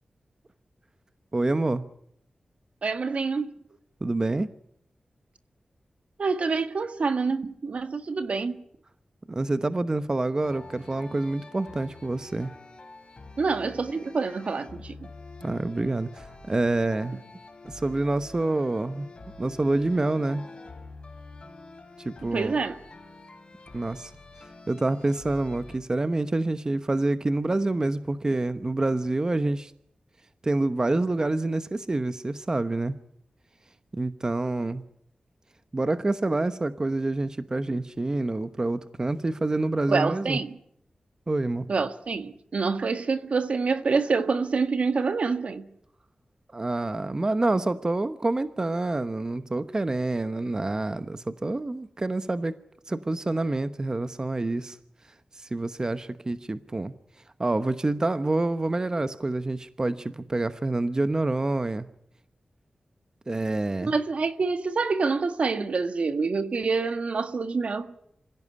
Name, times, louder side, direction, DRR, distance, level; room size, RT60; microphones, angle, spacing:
voice 1, 1.3-1.8 4.0-4.5 9.3-12.5 15.4-17.2 17.6-19.1 19.4-20.4 22.0-22.6 23.7-24.1 24.7-29.7 30.4-33.0 33.9-34.8 35.7-40.4 41.3-41.7 46.5-52.6 52.9-54.8 55.3-56.9 57.4-61.9 63.3-63.9, right 2 dB, 30° right, 1.0 m, -27 dB
voice 2, 2.8-3.6 6.2-8.6 13.4-15.1 22.2-22.8 39.9-40.6 41.7-45.7 63.9-67.9, right 4 dB, 65° right, 1.6 m, -27 dB
sound 1, 10.4-25.8, left 3 dB, 45° left, 4.7 m, -46 dB
25.5 x 16.5 x 9.8 m
wide cardioid pair, 80°, 2 cm